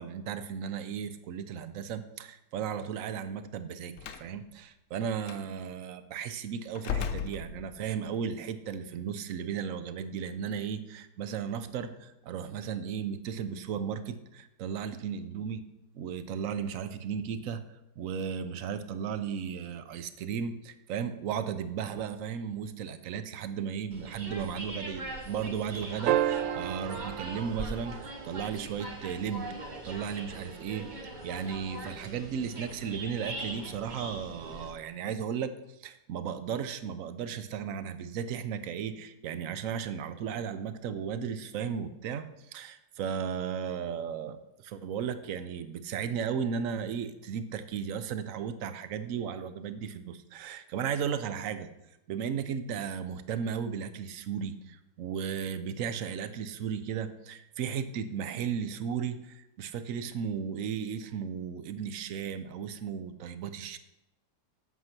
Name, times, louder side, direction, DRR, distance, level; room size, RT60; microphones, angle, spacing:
voice 1, 0.0-15.6 15.9-17.6 18.0-30.9 31.2-35.5 35.8-51.7 52.1-63.8, right 7 dB, 65° right, 12 dB, 0.9 m, -35 dB
Slam, 4.0-4.3 5.2-5.4 6.7-8.0, left 7 dB, 65° left, 0.8 m, -35 dB
sound 1, 23.9-34.7, right 2 dB, 30° right, 1.1 m, -41 dB
sound 2, 26.1-28.6 30.8-30.9, right 12 dB, 80° right, 1.3 m, -31 dB
8.3 x 7.5 x 5.9 m, 0.89 s
omnidirectional pair, 2.0 m